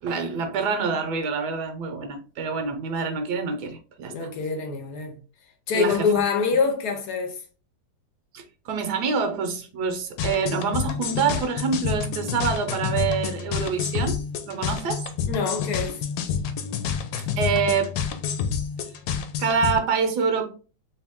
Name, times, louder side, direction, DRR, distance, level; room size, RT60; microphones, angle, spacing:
voice 1, 0.0-4.1 5.7-6.1 8.3-15.1 17.2-17.9 19.4-20.4, right 5 dB, 70° right, 1.2 m, -26 dB
voice 2, 4.1-5.2 5.7-7.4 15.2-16.1, left 5 dB, 70° left, 1.1 m, -25 dB
sound 1, 10.2-19.8, left 7 dB, 90° left, 1.3 m, -28 dB
3.1 x 2.9 x 3.5 m
omnidirectional pair, 2.0 m